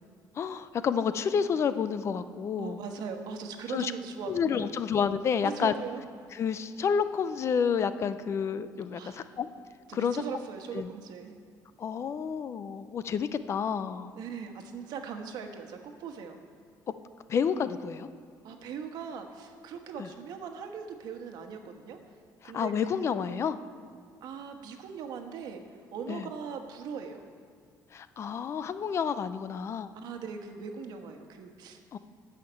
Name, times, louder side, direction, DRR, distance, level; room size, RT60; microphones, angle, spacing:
voice 1, 0.4-2.8 3.7-3.9 4.3-5.7 6.3-9.5 9.9-10.2 10.7-10.9 11.8-14.1 17.3-18.1 20.0-20.1 22.4-23.6 26.1-26.3 27.9-29.9 31.9-32.0, left 7 dB, 40° left, 12 dB, 0.5 m, -29 dB
voice 2, 2.6-4.8 5.4-6.0 8.9-9.3 9.9-11.3 14.2-16.4 18.4-22.0 22.4-23.2 24.2-25.6 25.9-27.3 29.9-32.0, right 6 dB, 65° right, 5 dB, 1.3 m, -40 dB
13.0 x 5.8 x 8.7 m, 2.3 s
cardioid pair, 150°, 7 cm